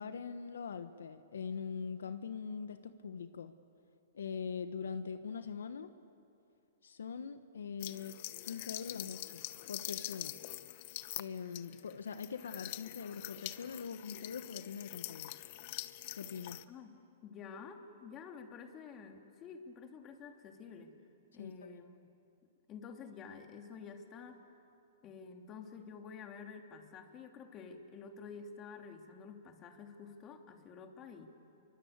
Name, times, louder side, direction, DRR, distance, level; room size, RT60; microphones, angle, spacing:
voice 1, 0.0-3.5 4.1-5.9 6.8-8.2 8.4-10.4 11.2-15.3 16.1-16.6 21.4-21.8, left 6 dB, 80° left, 10 dB, 1.3 m, -42 dB
sound 1, 7.8-16.6, left 17 dB, 50° left, 1.1 m, -44 dB
voice 2, 17.2-21.0 21.3-22.1 22.7-24.4 25.0-31.3, left 5 dB, 30° left, 4 dB, 3.1 m, -50 dB
29.5 x 24.0 x 8.3 m, 2.7 s
hypercardioid pair, 130°, 0 cm